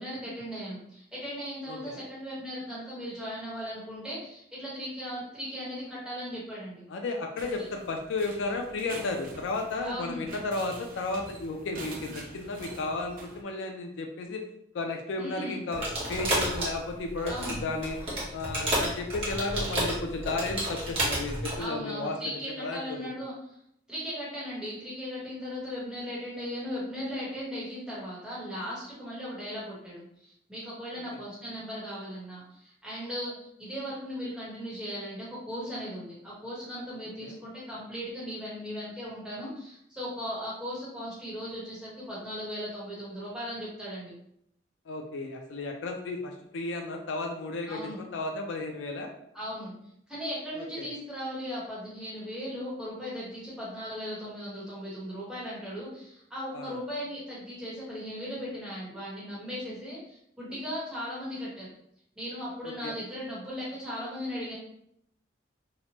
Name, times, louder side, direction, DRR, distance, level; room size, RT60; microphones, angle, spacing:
voice 1, 0.0-6.8 7.6-7.7 9.8-10.2 15.2-15.6 17.3-17.6 21.6-23.3 23.9-33.3 33.6-44.1 47.7-48.0 49.3-49.7 50.1-61.7 62.2-64.5, equal, 5° right, -8 dB, 1.0 m, -37 dB
voice 2, 1.7-2.0 6.9-14.4 14.7-18.0 18.3-22.2 22.6-23.1 37.2-37.4 44.9-49.1 50.6-50.9 56.5-56.8 62.6-62.9, left 3 dB, 75° left, 3 dB, 0.4 m, -33 dB
sound 1, 7.4-13.4, right 3 dB, 45° right, 0.4 m, -46 dB
sound 2, 15.7-21.6, right 1 dB, 30° right, 0.9 m, -31 dB
2.9 x 2.1 x 2.9 m, 0.73 s
head